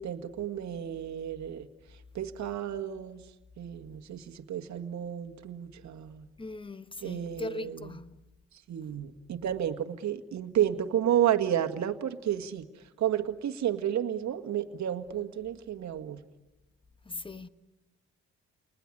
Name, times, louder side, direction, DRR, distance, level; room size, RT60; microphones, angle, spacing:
voice 1, 0.0-1.7 2.1-3.2 3.6-6.3 7.0-7.9 8.7-16.2, right 10 dB, 65° right, 1.9 m, -31 dB
voice 2, 6.4-8.2 17.0-17.5, left 2 dB, 15° left, 1.3 m, -40 dB
29.5 x 20.0 x 10.0 m
cardioid pair, 90°, 30 cm